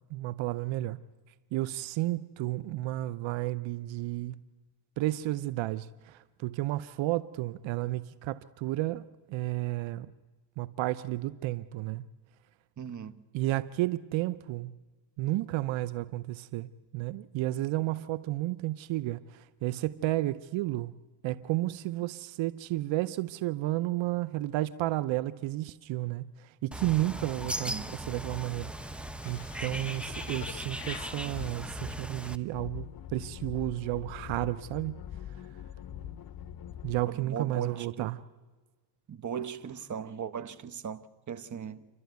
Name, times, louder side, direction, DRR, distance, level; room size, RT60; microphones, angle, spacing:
voice 1, 0.1-1.0 1.5-4.3 5.0-10.1 10.6-12.0 13.3-14.7 15.2-20.9 21.2-28.9 29.2-35.0 36.8-38.2, right 16 dB, 85° right, 0.8 m, -32 dB
voice 2, 12.8-13.1 27.7-27.9 37.1-38.1 39.1-41.9, right 7 dB, 40° right, 1.2 m, -38 dB
Bird, 26.7-32.4, right 1 dB, ahead, 1.0 m, -38 dB
sound 1, 29.2-37.1, left 10 dB, 50° left, 1.0 m, -43 dB
28.5 x 12.5 x 9.4 m
cardioid pair, 90°, 45 cm